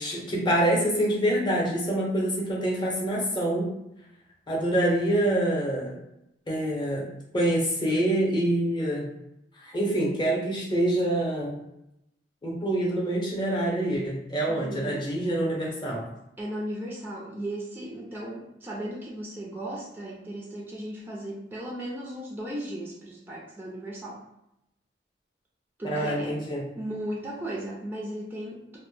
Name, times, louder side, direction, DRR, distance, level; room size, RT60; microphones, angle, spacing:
voice 1, 0.0-3.7 4.5-5.9 6.5-7.1 7.3-9.1 9.6-11.6 12.4-16.0 25.8-26.6, right 1 dB, 25° left, -4 dB, 0.7 m, -26 dB
voice 2, 14.5-15.1 16.4-24.2 25.8-26.4 26.8-28.8, right 1 dB, 10° right, -3 dB, 0.3 m, -36 dB
2.1 x 2.0 x 3.1 m, 0.84 s
head